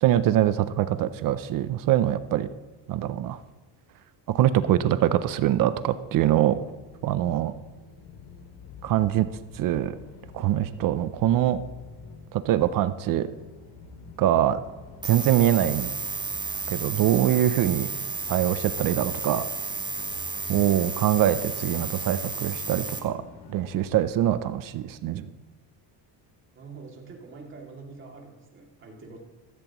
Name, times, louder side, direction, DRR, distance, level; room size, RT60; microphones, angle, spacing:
voice 1, 0.0-2.5 2.9-3.4 4.3-6.6 7.0-7.6 8.8-9.3 9.5-9.9 10.3-11.6 12.3-13.3 14.2-14.6 15.0-15.9 16.7-17.9 18.3-19.5 20.5-23.2 23.5-25.3, right 12 dB, 50° right, 13 dB, 0.6 m, -23 dB
sound 1, 4.8-24.3, left 4 dB, 75° left, 2.5 m, -47 dB
sound 2, 15.0-23.0, right 4 dB, 10° right, 1.2 m, -32 dB
voice 2, 26.5-29.2, right 4 dB, 30° right, 0 dB, 2.5 m, -45 dB
15.0 x 14.5 x 3.0 m, 1.3 s
cardioid pair, 175°, 43 cm